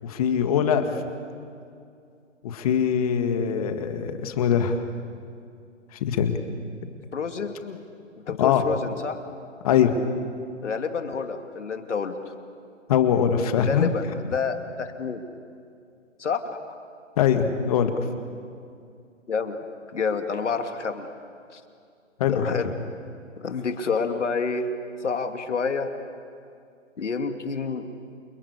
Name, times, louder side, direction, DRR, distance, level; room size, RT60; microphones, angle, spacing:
voice 1, 0.0-0.9 2.4-4.8 6.0-6.4 8.4-8.6 9.6-10.0 12.9-13.9 17.2-18.1 22.2-22.5, left 8 dB, 30° left, 7 dB, 1.9 m, -22 dB
voice 2, 7.1-7.8 8.3-9.2 10.6-12.2 13.5-15.2 16.2-16.4 19.3-19.6 19.9-21.1 21.5-21.6 22.3-22.7 23.4-24.7 25.0-25.9 27.0-27.9, left 5 dB, 65° left, 6 dB, 2.7 m, -28 dB
29.0 x 24.0 x 8.4 m, 2.4 s
hypercardioid pair, 155°, 38 cm